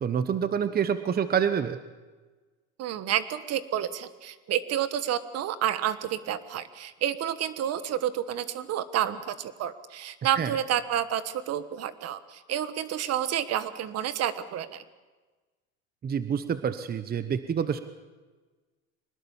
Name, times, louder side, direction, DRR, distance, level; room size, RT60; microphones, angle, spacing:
voice 1, 0.0-1.8 10.4-10.5 16.0-17.8, right 7 dB, 30° right, 12 dB, 1.0 m, -27 dB
voice 2, 2.8-14.8, right 10 dB, 50° right, 14 dB, 1.4 m, -30 dB
23.5 x 20.0 x 7.2 m, 1.3 s
supercardioid pair, 95°, 31 cm